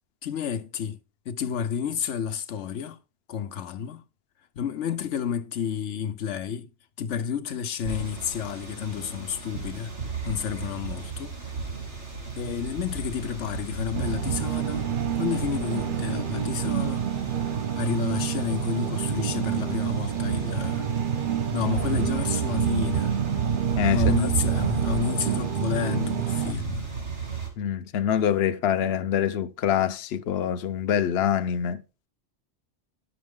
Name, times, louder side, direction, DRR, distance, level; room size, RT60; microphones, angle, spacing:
voice 1, 0.2-1.0 1.3-3.0 3.3-4.0 4.6-6.7 7.0-9.9 10.2-11.4 12.4-14.9 15.2-17.1 17.7-20.9 21.5-23.1 23.9-26.8, left 7 dB, 90° left, 1.1 m, -30 dB
sound 1, 7.8-27.5, right 5 dB, 70° right, 3.1 m, -33 dB
sound 2, 13.9-26.5, right 8 dB, 55° right, 0.7 m, -28 dB
voice 2, 23.8-24.1 27.6-31.8, left 9 dB, 65° left, 0.9 m, -25 dB
10.5 x 7.0 x 3.7 m
omnidirectional pair, 1.2 m